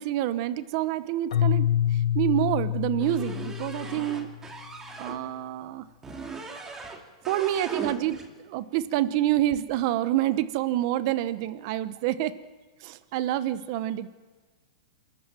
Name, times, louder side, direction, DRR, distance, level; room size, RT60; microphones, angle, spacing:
voice 1, 0.0-1.7 2.1-4.3 5.0-5.9 7.3-12.3 12.8-14.1, right 13 dB, 45° right, 14 dB, 1.0 m, -27 dB
Keyboard (musical), 1.3-4.4, left 11 dB, 75° left, 1.0 m, -27 dB
sound 1, 3.0-5.2 6.0-7.0 7.2-8.3, right 3 dB, 15° right, 2.4 m, -39 dB
27.5 x 14.0 x 7.5 m, 1.4 s
hypercardioid pair, 150°, 3 cm